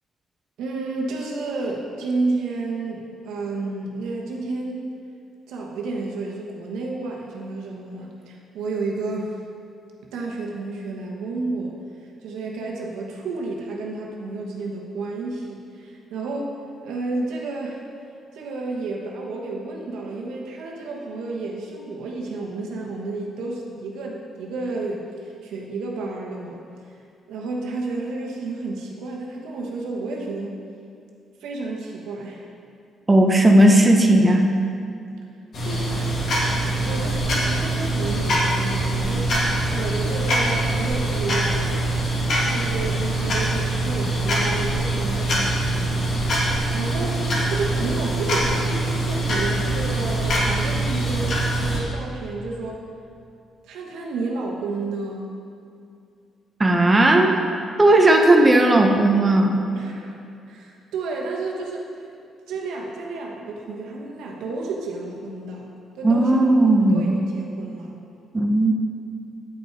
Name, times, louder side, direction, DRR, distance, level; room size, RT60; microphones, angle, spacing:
voice 1, 0.6-4.9 5.5-9.3 10.1-11.8 12.2-16.5 16.8-17.8 18.3-26.6 27.3-30.6 31.4-32.5 35.6-36.2 36.8-39.3 39.7-41.7 42.4-46.0 46.7-52.8 53.6-55.3 59.7-60.1 60.5-62.1 62.5-65.7 65.9-66.4 66.8-67.9, right 3 dB, 85° right, -1 dB, 1.2 m, -31 dB
voice 2, 33.1-34.5 56.6-57.4 57.8-59.7 66.0-67.2 68.3-68.7, right 1 dB, 20° right, 2 dB, 0.8 m, -16 dB
sound 1, 35.5-51.8, right 1 dB, 60° left, 2.0 m, -23 dB
8.9 x 5.7 x 4.6 m, 2.5 s
cardioid pair, 90°, 0 cm